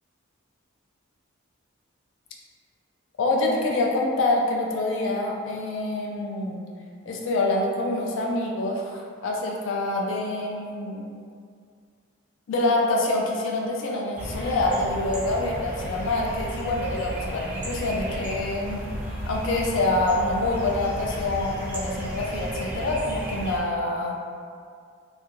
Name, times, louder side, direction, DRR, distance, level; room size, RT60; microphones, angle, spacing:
voice 1, 3.2-6.6 7.1-11.1 12.5-18.8 19.3-24.2, left 2 dB, 65° left, -1 dB, 0.4 m, -26 dB
sound 1, 14.2-23.6, equal, 10° right, 0.4 m, -34 dB
2.3 x 2.1 x 3.0 m, 2.2 s
head